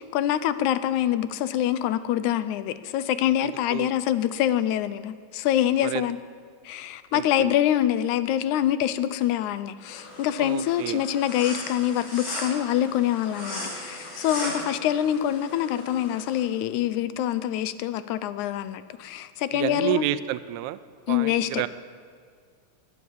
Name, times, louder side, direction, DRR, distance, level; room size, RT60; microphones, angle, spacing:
voice 1, 0.0-6.2 6.7-20.1 21.1-21.6, left 11 dB, 85° left, 13 dB, 2.1 m, -25 dB
voice 2, 3.4-3.9 5.8-6.1 7.1-7.5 10.4-11.0 19.5-20.8 21.1-21.7, right 15 dB, 85° right, 14 dB, 2.0 m, -30 dB
sound 1, 9.9-16.4, left 1 dB, 55° left, 6.6 m, -37 dB
20.0 x 9.7 x 7.2 m, 2.1 s
omnidirectional pair, 3.4 m